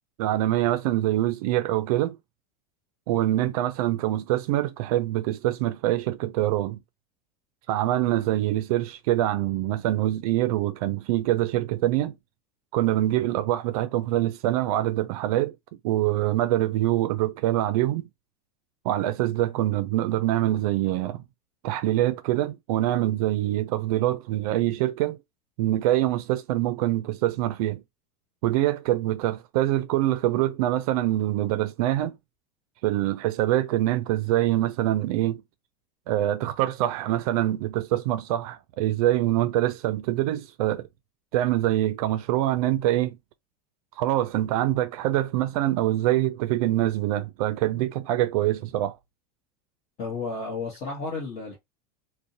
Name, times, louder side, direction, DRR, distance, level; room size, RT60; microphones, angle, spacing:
voice 1, 0.2-2.2 3.1-6.8 7.7-12.1 12.7-15.6 15.8-18.1 18.8-21.2 21.6-25.2 25.6-27.8 28.4-32.2 32.8-35.4 36.1-40.9 41.3-43.2 44.0-48.9, right 14 dB, 70° right, 0.4 m, -24 dB
voice 2, 50.0-51.6, left 4 dB, 40° left, 1.0 m, -32 dB
2.5 x 2.1 x 2.6 m
supercardioid pair, 145°, 19 cm